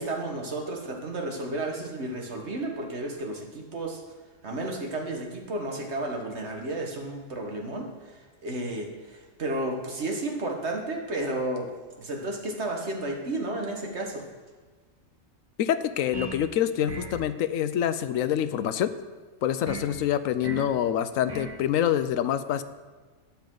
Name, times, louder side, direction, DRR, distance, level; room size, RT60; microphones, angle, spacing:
voice 1, 0.0-4.0 4.4-11.7 12.0-14.2, right 2 dB, 55° right, 1 dB, 1.7 m, -32 dB
voice 2, 15.6-18.9 19.4-22.6, left 10 dB, 80° left, 12 dB, 1.0 m, -26 dB
sound 1, 16.1-16.5 16.9-17.2 19.7-19.9 20.4-20.7 21.3-21.6, right 2 dB, 20° right, 1.0 m, -37 dB
13.0 x 8.9 x 3.8 m, 1.4 s
omnidirectional pair, 1.4 m